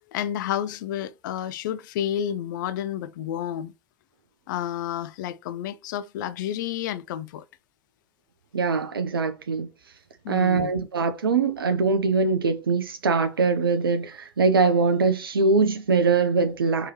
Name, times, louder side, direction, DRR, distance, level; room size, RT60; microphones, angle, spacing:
voice 1, 0.1-3.7 4.5-7.4 10.2-10.7, left 10 dB, 55° left, 0.4 m, -30 dB
voice 2, 8.5-9.7 10.3-16.9, right 4 dB, 80° right, 0.4 m, -22 dB
4.6 x 2.9 x 3.0 m
figure-of-eight pair, 80°, 12 cm